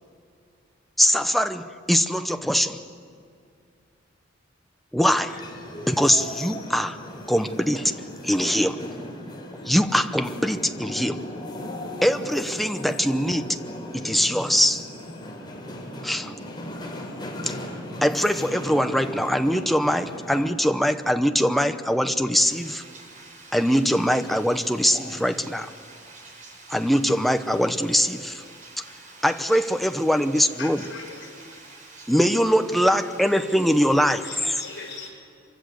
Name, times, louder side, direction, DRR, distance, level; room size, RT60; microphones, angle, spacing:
voice 1, 1.0-2.8 4.9-5.4 5.8-7.0 7.3-8.0 8.2-8.8 9.6-11.2 12.0-13.6 13.9-14.8 16.0-16.3 17.5-17.6 18.0-22.8 23.5-25.7 26.7-28.4 29.2-30.8 32.1-34.5, equal, ahead, 8 dB, 0.9 m, -22 dB
sound 1, 5.3-20.5, left 1 dB, 25° left, 3.9 m, -37 dB
voice 2, 22.9-23.6 24.9-25.0 25.8-26.8 28.5-29.3 31.5-32.1, right 2 dB, 40° right, 0 dB, 6.4 m, -46 dB
voice 3, 30.6-31.5 34.2-35.1, left 4 dB, 65° left, -1 dB, 6.8 m, -39 dB
25.5 x 24.0 x 8.0 m, 2.4 s
head